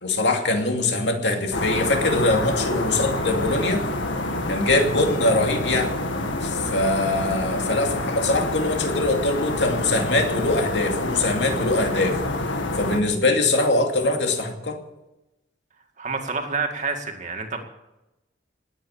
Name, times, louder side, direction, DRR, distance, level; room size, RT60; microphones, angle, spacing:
voice 1, 0.0-3.8 4.5-5.9 6.4-12.2 12.8-14.8, left 2 dB, 70° left, 3 dB, 2.5 m, -22 dB
sound 1, 1.5-13.0, left 2 dB, 90° left, 2.0 m, -27 dB
voice 2, 16.0-17.6, right 4 dB, 40° right, 4 dB, 2.2 m, -28 dB
19.5 x 9.0 x 7.3 m, 0.96 s
head